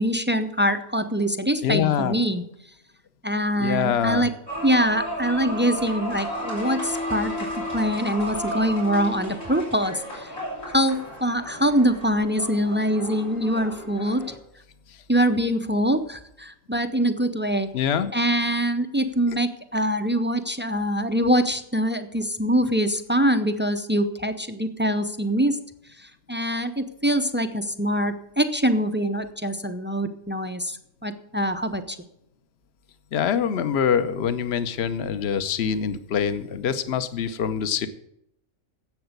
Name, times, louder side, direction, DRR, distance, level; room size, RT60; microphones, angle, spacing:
voice 1, 0.0-2.4 3.2-4.3 4.6-10.3 10.7-14.2 15.1-17.7 18.1-25.6 26.0-32.0, equal, 20° right, 9 dB, 0.3 m, -24 dB
voice 2, 1.6-2.1 3.6-4.3 17.7-18.1 33.1-37.9, left 8 dB, 60° left, 11 dB, 1.0 m, -24 dB
sound 1, 4.5-14.3, equal, 90° left, 6.3 m, -33 dB
10.5 x 7.9 x 8.0 m, 0.79 s
omnidirectional pair, 1.3 m